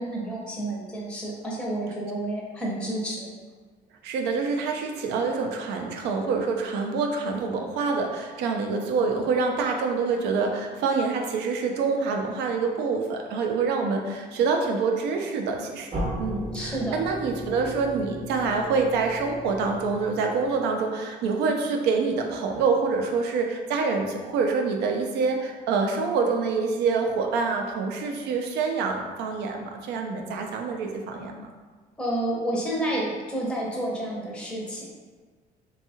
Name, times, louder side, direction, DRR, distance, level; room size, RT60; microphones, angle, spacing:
voice 1, 0.0-3.3 16.5-17.0 32.0-34.9, right 1 dB, 5° left, -3 dB, 0.6 m, -30 dB
voice 2, 4.0-31.5, right 4 dB, 80° right, 3 dB, 0.4 m, -26 dB
sound 1, 15.9-20.7, equal, 35° right, 0.7 m, -36 dB
2.7 x 2.3 x 2.7 m, 1.4 s
cardioid pair, 110°, 17 cm